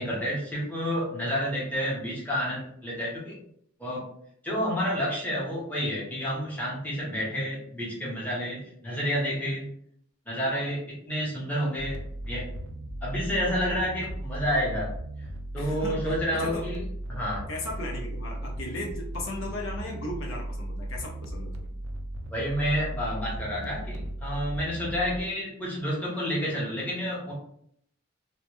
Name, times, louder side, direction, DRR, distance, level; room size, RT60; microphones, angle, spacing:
voice 1, 0.0-3.3 3.8-4.0 4.4-9.7 10.3-12.0 12.3-12.4 13.0-14.9 15.2-15.3 15.5-16.8 17.1-17.4 22.3-27.3, equal, 10° left, -6 dB, 0.7 m, -29 dB
sound 1, 11.8-25.2, right 1 dB, 60° right, 0.3 m, -36 dB
voice 2, 15.6-16.6 17.5-21.7, left 1 dB, 65° left, -1 dB, 0.6 m, -36 dB
2.2 x 2.1 x 3.0 m, 0.68 s
head